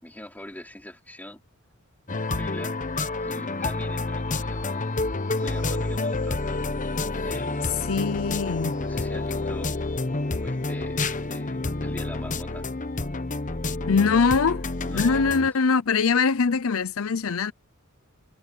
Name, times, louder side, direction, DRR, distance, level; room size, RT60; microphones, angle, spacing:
voice 1, 0.0-1.4 2.3-2.8 3.2-5.1 5.3-6.7 7.2-7.9 8.8-9.7 10.3-12.7 14.8-15.3, left 1 dB, 10° left, 3.0 m, -42 dB
sound 1, 2.1-15.5, left 3 dB, 40° left, 1.1 m, -29 dB
voice 2, 7.9-8.8 13.9-14.7 14.9-17.5, left 5 dB, 80° left, 0.6 m, -22 dB
head